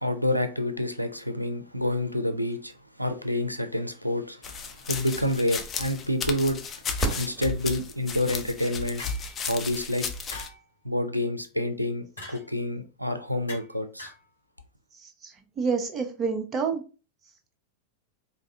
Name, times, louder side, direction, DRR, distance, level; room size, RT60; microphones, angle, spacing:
voice 1, 0.0-2.7 3.0-6.6 7.2-9.0 9.4-10.1 10.8-14.1, left 1 dB, 90° right, 0.5 m, -28 dB
sound 1, 4.4-10.5, left 5 dB, 25° left, 0.6 m, -34 dB
sound 2, 7.0-7.7 9.0-9.4 10.3-10.6 12.2-12.5 13.5-13.7 14.0-14.2, left 2 dB, 80° left, 1.8 m, -43 dB
Fireworks, 7.0-9.7 10.4-10.5 11.2-11.7 13.6-13.7, right 2 dB, ahead, 1.6 m, -36 dB
voice 2, 14.9-16.8, right 5 dB, 25° right, 0.8 m, -29 dB
4.5 x 2.6 x 3.6 m
figure-of-eight pair, 90°, 0 cm